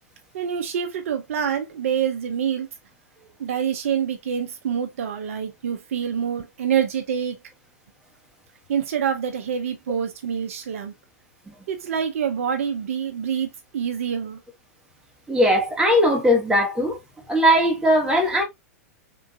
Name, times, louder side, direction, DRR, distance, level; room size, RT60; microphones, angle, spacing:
voice 1, 0.3-2.7 3.4-7.4 8.7-10.9 11.7-13.5 13.7-14.4, right 8 dB, 60° right, 0.5 m, -26 dB
voice 2, 15.3-17.0 17.3-18.4, equal, 10° right, 1.2 m, -19 dB
3.7 x 2.5 x 2.5 m
figure-of-eight pair, 100°, 8 cm